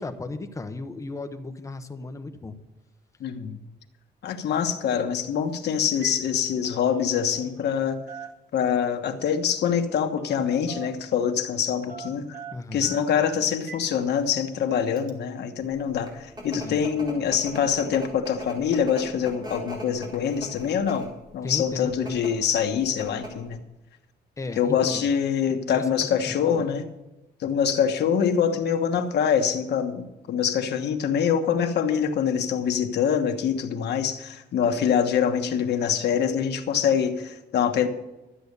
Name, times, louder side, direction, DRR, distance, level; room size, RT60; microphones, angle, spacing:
voice 1, 0.0-2.6 12.5-12.9 16.5-16.8 21.4-22.2 24.4-25.0 25.7-26.7, left 3 dB, 15° left, 7 dB, 0.9 m, -35 dB
voice 2, 3.2-3.6 4.2-8.0 8.5-12.4 12.7-23.6 24.6-26.9 27.4-37.9, left 8 dB, 70° left, 6 dB, 1.3 m, -25 dB
Telephone, 5.4-5.6 5.9-6.2 6.5-7.8 8.1-9.0 10.2-10.4 10.7-11.4 11.9-13.9 14.2-14.3 15.0-15.1, right 6 dB, 55° right, 1.5 m, -43 dB
sound 1, 15.8-21.2 21.9-22.3 22.7-22.8 23.0-23.5, equal, 25° right, 4.2 m, -39 dB
13.0 x 8.4 x 6.7 m, 0.98 s
wide cardioid pair, 170°, 18 cm